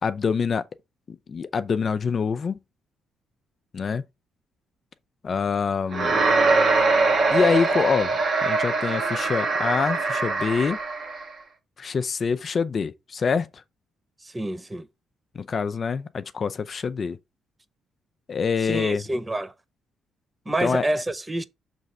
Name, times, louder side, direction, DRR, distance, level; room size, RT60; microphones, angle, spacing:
voice 1, 0.0-0.6 1.1-2.6 3.7-4.0 5.2-6.2 7.3-10.8 11.8-13.6 15.3-17.2 18.3-19.0 20.6-20.8, left 5 dB, 45° left, 0.5 m, -25 dB
sound 1, 5.9-11.3, right 3 dB, 50° right, 1.2 m, -22 dB
voice 2, 14.2-14.9 18.6-19.5 20.5-21.4, right 1 dB, 15° right, 0.6 m, -28 dB
6.2 x 3.3 x 5.3 m
cardioid pair, 90°, 0 cm